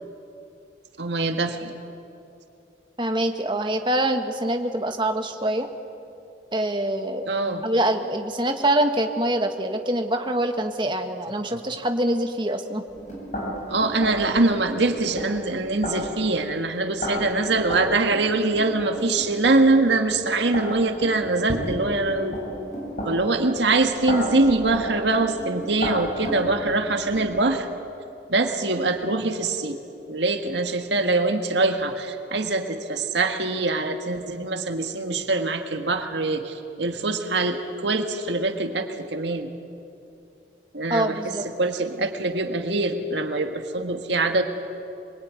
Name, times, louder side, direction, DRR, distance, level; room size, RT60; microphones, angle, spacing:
voice 1, 1.0-1.8 7.3-7.6 13.7-22.4 23.0-27.7 28.3-29.8 30.1-39.5 40.7-41.3 41.6-44.4, right 2 dB, 75° right, 5 dB, 1.7 m, -23 dB
voice 2, 3.0-5.7 6.5-7.3 7.6-12.8 40.9-41.5, right 1 dB, 25° right, 5 dB, 1.6 m, -24 dB
sound 1, 12.9-27.5, equal, 40° left, 8.0 m, -34 dB
26.0 x 22.0 x 9.6 m, 2.7 s
head